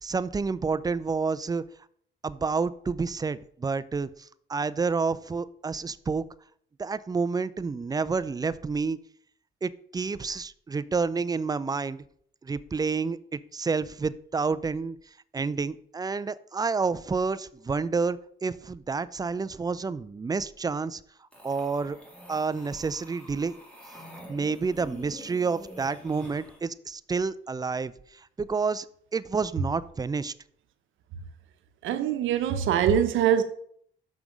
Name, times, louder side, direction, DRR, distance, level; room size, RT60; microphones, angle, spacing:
voice 1, 0.0-1.6 2.2-6.2 6.8-9.0 9.6-12.0 12.4-15.0 15.3-21.0 21.4-22.0 22.3-23.5 24.3-27.9 28.4-28.9 29.1-30.3, right 4 dB, 20° right, 0.4 m, -29 dB
sound 1, 21.3-26.6, equal, 5° left, 2.6 m, -46 dB
voice 2, 31.8-33.4, right 9 dB, 80° right, 0.8 m, -23 dB
6.2 x 5.7 x 5.2 m
cardioid pair, 90°, 20 cm